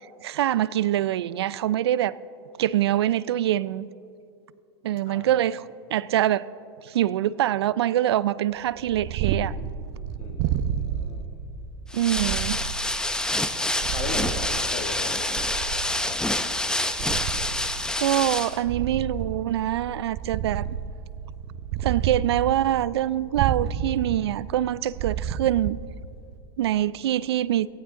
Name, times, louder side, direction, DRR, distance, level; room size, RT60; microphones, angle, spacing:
voice 1, 0.2-2.1 2.6-3.9 4.8-5.6 5.9-6.4 6.8-9.5 11.9-12.6 18.0-20.7 21.8-25.8 26.6-27.7, right 12 dB, 85° right, 19 dB, 0.4 m, -24 dB
Purr, 8.7-26.4, right 9 dB, 55° right, 0.8 m, -31 dB
voice 2, 10.2-11.4 13.9-15.2, left 4 dB, 45° left, 4 dB, 2.1 m, -37 dB
sound 1, 11.9-18.6, left 1 dB, 5° left, 0.7 m, -27 dB
17.5 x 15.5 x 3.8 m, 2.6 s
hypercardioid pair, 110°, 13 cm